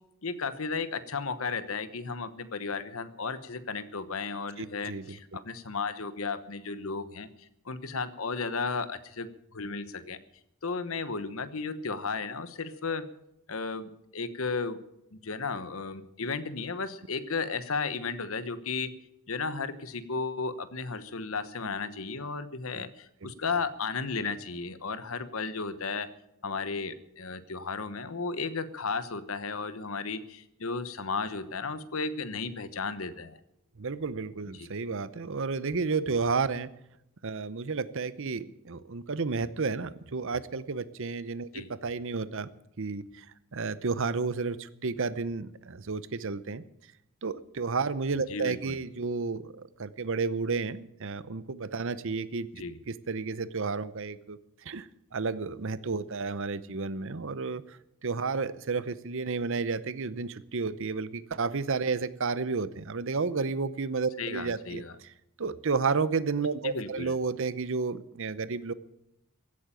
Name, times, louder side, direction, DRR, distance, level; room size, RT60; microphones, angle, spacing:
voice 1, 0.2-10.2 10.6-13.1 13.5-14.8 15.1-18.9 19.3-26.1 26.4-33.4 34.5-34.7 41.5-41.7 48.3-48.8 52.5-52.8 64.2-64.9 66.6-67.1, left 4 dB, 65° left, 13 dB, 1.1 m, -34 dB
voice 2, 4.6-5.2 22.7-22.8 23.2-23.3 33.8-36.7 37.2-42.5 42.8-43.3 43.5-46.6 47.2-49.5 49.8-52.5 52.9-65.1 65.4-68.7, right 4 dB, 60° right, 16 dB, 0.7 m, -32 dB
16.0 x 8.7 x 9.0 m, 0.84 s
head